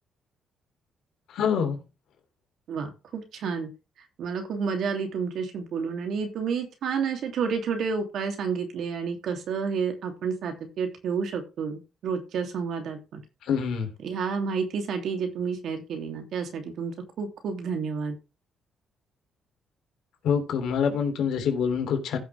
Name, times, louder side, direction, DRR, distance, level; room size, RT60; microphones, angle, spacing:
voice 1, 1.3-1.8 13.5-13.9 20.2-22.2, left 7 dB, 75° left, 3.2 m, -25 dB
voice 2, 2.7-3.7 4.2-13.2 14.0-18.2, right 5 dB, 70° right, 3.0 m, -30 dB
15.0 x 6.2 x 3.5 m
cardioid pair, 90°, 0 cm